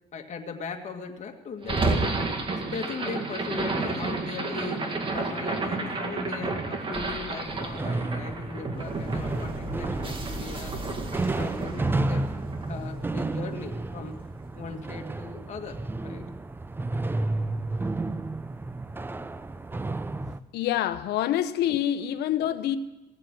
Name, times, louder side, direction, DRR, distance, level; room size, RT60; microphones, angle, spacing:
voice 1, 0.1-2.1 2.5-10.8 11.4-12.3 12.7-14.2 14.5-16.3, left 5 dB, 45° left, 1.8 m, -39 dB
sound 1, 1.6-13.8, right 3 dB, 30° right, 2.0 m, -31 dB
sound 2, 7.4-20.4, right 2 dB, 10° right, 0.5 m, -32 dB
voice 2, 20.5-22.8, left 11 dB, 75° left, 0.8 m, -26 dB
17.5 x 7.6 x 9.0 m
cardioid pair, 110°, 17 cm